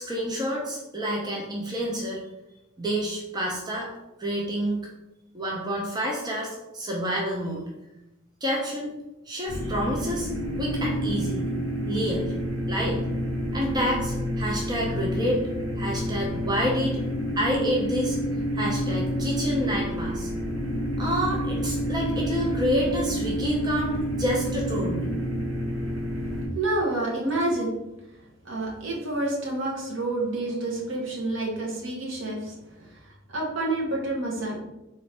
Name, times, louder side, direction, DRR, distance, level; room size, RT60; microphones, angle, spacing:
voice 1, 0.0-2.2 2.8-3.9 4.2-4.9 5.3-7.6 8.4-9.0 9.3-10.3 10.6-11.5 11.9-12.3 12.7-13.0 13.5-15.4 15.8-17.0 17.4-18.2 18.5-20.3 21.0-25.1, equal, 20° right, -3 dB, 0.5 m, -28 dB
sound 1, 9.5-26.5, equal, 85° right, 1.2 m, -29 dB
voice 2, 26.5-27.7 28.4-32.9 33.3-34.6, right 2 dB, 65° right, -2 dB, 0.9 m, -28 dB
3.9 x 2.5 x 3.3 m, 0.96 s
head